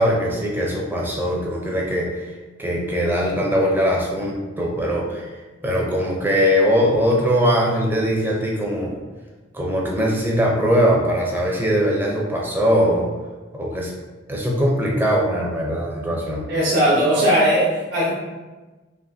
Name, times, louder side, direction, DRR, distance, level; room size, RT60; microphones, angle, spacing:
voice 1, 0.0-2.2 2.6-5.3 5.6-9.0 9.5-13.1 13.5-13.9 14.3-16.5, equal, 10° right, -2 dB, 0.6 m, -21 dB
voice 2, 16.5-18.1, equal, 60° right, -7 dB, 1.2 m, -18 dB
5.3 x 2.7 x 2.7 m, 1.2 s
head